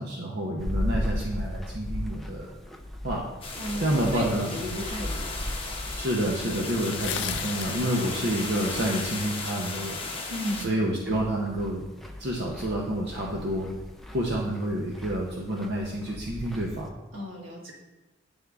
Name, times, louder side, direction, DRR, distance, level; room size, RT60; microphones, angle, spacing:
voice 1, 0.0-2.5 3.0-3.2 3.8-4.5 5.9-10.0 10.6-11.8 12.2-13.7 14.1-16.9, right 1 dB, 55° right, -2 dB, 0.7 m, -29 dB
sound 1, 0.6-16.9, left 1 dB, ahead, 0.4 m, -38 dB
sound 2, 3.4-10.7, left 3 dB, 25° left, 0.8 m, -35 dB
voice 2, 3.6-5.3 10.3-10.6 17.1-17.6, left 1 dB, 80° right, -2 dB, 1.5 m, -33 dB
sound 3, 5.9-6.0 6.8-7.8 8.3-8.9, left 9 dB, 60° left, 0.4 m, -34 dB
9.3 x 3.6 x 3.5 m, 1.0 s
head